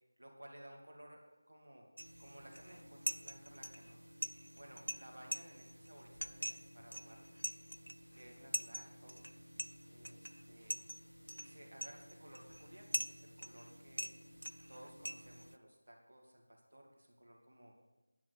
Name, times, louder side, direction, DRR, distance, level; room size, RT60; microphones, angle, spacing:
voice 1, 0.2-1.9 2.2-4.0 4.5-7.3 8.1-9.3 9.9-10.8 11.3-14.1 14.7-17.7, right 1 dB, 65° right, 0 dB, 2.5 m, -57 dB
sound 1, 2.0-15.6, equal, 85° right, 0.5 m, -45 dB
10.0 x 7.4 x 6.5 m, 1.1 s
figure-of-eight pair, 165°, 0 cm